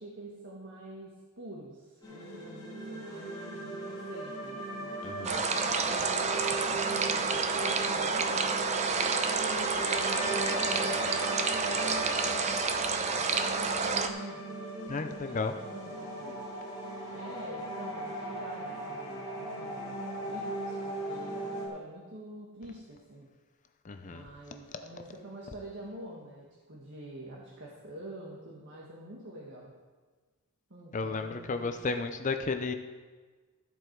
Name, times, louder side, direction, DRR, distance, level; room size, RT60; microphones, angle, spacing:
voice 1, 0.0-5.0 5.5-8.5 9.0-11.1 11.6-14.4 14.9-16.4 17.1-20.0 20.2-23.3 24.1-29.7 30.7-32.1, right 1 dB, 55° right, -3 dB, 1.6 m, -46 dB
sound 1, 2.0-21.7, right 1 dB, 20° left, 2.5 m, -38 dB
voice 2, 5.0-5.4 14.9-15.5 23.9-24.2 30.9-32.7, left 4 dB, 35° left, 7 dB, 0.5 m, -33 dB
sound 2, 5.2-14.1, right 4 dB, 30° right, 0.6 m, -29 dB
13.5 x 7.8 x 4.6 m, 1.4 s
head